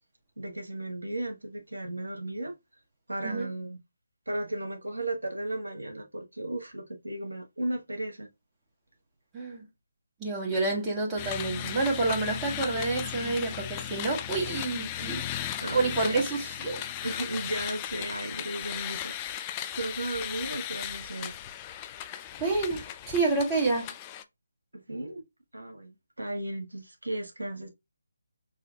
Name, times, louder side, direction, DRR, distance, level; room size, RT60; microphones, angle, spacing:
voice 1, 0.4-2.5 3.1-3.8 4.3-8.3 15.6-16.3 17.0-19.5 19.7-21.3 24.7-25.2 25.5-27.7, right 1 dB, 80° right, 1.1 m, -35 dB
voice 2, 9.3-9.7 10.2-16.8 22.4-23.9, right 3 dB, 15° right, 1.5 m, -29 dB
sound 1, 11.2-24.2, left 11 dB, 20° left, 0.4 m, -36 dB
6.2 x 2.5 x 2.4 m
figure-of-eight pair, 150°, 0 cm